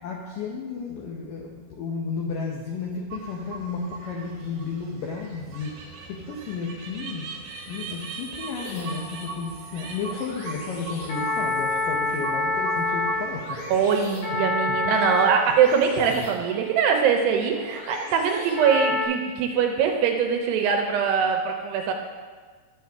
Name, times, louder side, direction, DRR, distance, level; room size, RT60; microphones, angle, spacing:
voice 1, 0.0-14.4 14.7-15.2 16.1-16.3, left 5 dB, 85° left, -1 dB, 1.9 m, -33 dB
sound 1, 3.1-14.0, right 4 dB, 65° right, 2.4 m, -40 dB
sound 2, 8.5-19.1, left 3 dB, 55° left, 3.0 m, -30 dB
voice 2, 13.7-21.9, right 6 dB, 80° right, 3 dB, 2.6 m, -22 dB
12.0 x 7.6 x 3.5 m, 1.4 s
omnidirectional pair, 5.1 m